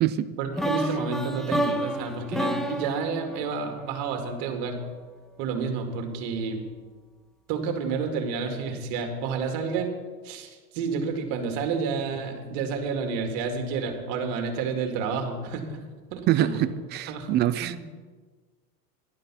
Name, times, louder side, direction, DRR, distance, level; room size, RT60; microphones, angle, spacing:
voice 1, 0.4-4.8 5.4-6.6 7.5-9.9 10.2-15.8 16.1-16.6 17.1-17.3 17.6-17.8, right 5 dB, 55° right, 2.4 m, -30 dB
sound 1, 0.6-4.5, equal, ahead, 0.8 m, -30 dB
voice 2, 16.3-17.9, right 12 dB, 25° right, 0.3 m, -24 dB
11.5 x 10.5 x 5.7 m
hypercardioid pair, 100°, 48 cm